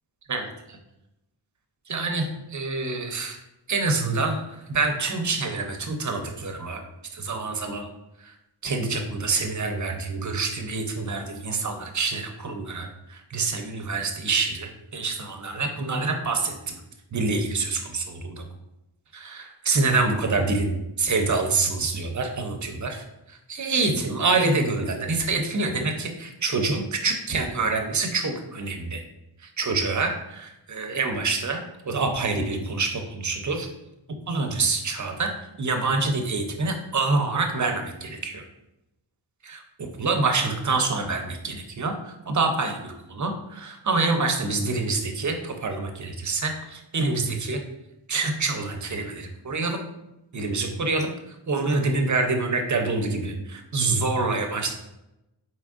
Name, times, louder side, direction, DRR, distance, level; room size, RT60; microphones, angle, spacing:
voice 1, 1.9-3.4 3.7-6.8 7.1-7.9 8.2-8.3 8.6-16.5 17.1-18.4 19.1-29.0 29.4-33.7 34.3-38.4 39.4-47.6 48.1-49.8 50.3-51.1 51.5-54.7, right 3 dB, 35° right, 5 dB, 0.6 m, -26 dB
4.1 x 3.6 x 2.4 m, 0.91 s
wide cardioid pair, 85°, 50 cm